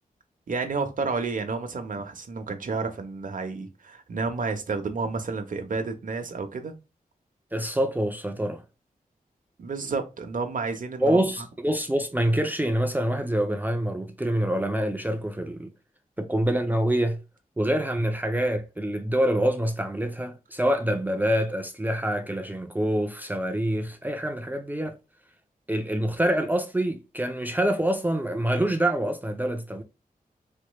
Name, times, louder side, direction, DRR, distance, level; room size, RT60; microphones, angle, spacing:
voice 1, 0.5-6.7 9.6-11.2, right 4 dB, 60° right, 0.9 m, -30 dB
voice 2, 7.5-8.6 11.0-15.7 16.2-17.2 17.6-25.0 25.7-29.8, right 1 dB, 10° right, 0.5 m, -26 dB
4.4 x 3.1 x 2.2 m
wide cardioid pair, 105°, 15 cm